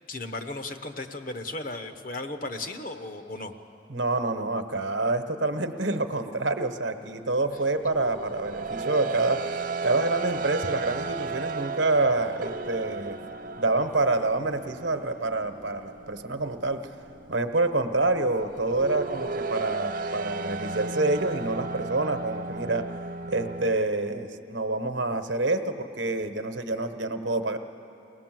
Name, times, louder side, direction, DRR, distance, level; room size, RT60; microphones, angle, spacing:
voice 1, 0.1-3.5, left 2 dB, 45° left, 8 dB, 1.0 m, -35 dB
voice 2, 3.9-13.2 13.6-16.8 17.3-22.8 23.3-27.6, right 2 dB, 70° right, 8 dB, 1.1 m, -27 dB
sound 1, 7.4-23.8, right 4 dB, 45° right, 0.5 m, -35 dB
23.0 x 18.5 x 7.6 m, 2.7 s
head